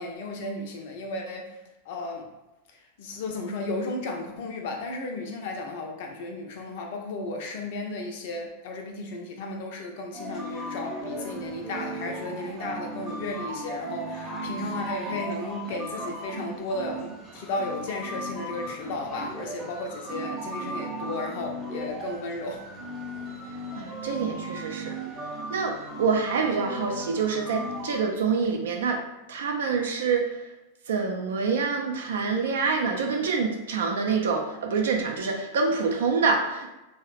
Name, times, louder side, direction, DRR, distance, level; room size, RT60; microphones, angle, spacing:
voice 1, 0.0-1.5 1.9-2.2 3.0-22.6, left 2 dB, 50° left, 2 dB, 0.4 m, -34 dB
sound 1, 10.1-28.0, right 1 dB, 5° right, 0.7 m, -36 dB
voice 2, 23.8-24.9 25.5-29.0 29.3-30.3 30.9-36.7, right 5 dB, 60° right, 2 dB, 0.4 m, -26 dB
3.0 x 2.0 x 2.4 m, 0.99 s
figure-of-eight pair, 90°, 0 cm